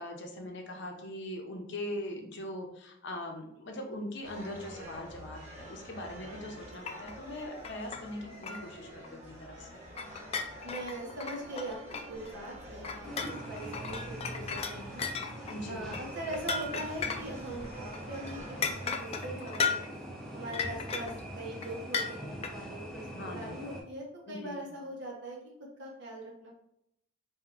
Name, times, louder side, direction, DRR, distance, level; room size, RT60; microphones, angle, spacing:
voice 1, 0.0-9.9 15.5-16.0 23.1-23.6 24.3-24.7, left 1 dB, 60° left, 2 dB, 0.7 m, -41 dB
sound 1, 4.2-18.9, right 1 dB, 35° right, 1.3 m, -47 dB
sound 2, 6.9-7.1 7.4-8.1 8.4-8.7 9.0-9.1 10.0-12.3 12.8-17.7 17.9-18.0 18.3-18.4 18.6-20.0 20.5-21.2 21.6-21.7 21.9-22.5, left 5 dB, 30° left, 0.3 m, -35 dB
voice 2, 10.6-11.8 12.1-15.1 15.7-19.9 20.3-26.5, right 1 dB, 60° right, -1 dB, 1.0 m, -41 dB
sound 3, 13.0-23.8, right 1 dB, ahead, 0.7 m, -43 dB
4.5 x 2.6 x 2.5 m, 0.77 s
head